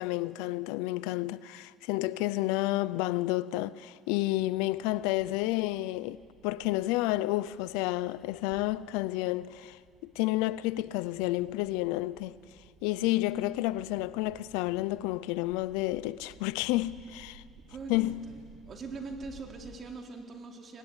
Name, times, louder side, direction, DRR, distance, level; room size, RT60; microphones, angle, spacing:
voice 1, 0.0-12.4 12.8-17.4 17.9-18.3, left 17 dB, 90° left, 0.6 m, -30 dB
sound 1, 4.2-19.7, right 5 dB, 75° right, 7.1 m, -57 dB
voice 2, 17.7-20.8, right 3 dB, 40° right, 4.0 m, -42 dB
25.0 x 19.5 x 9.9 m
cardioid pair, 110°, 0 cm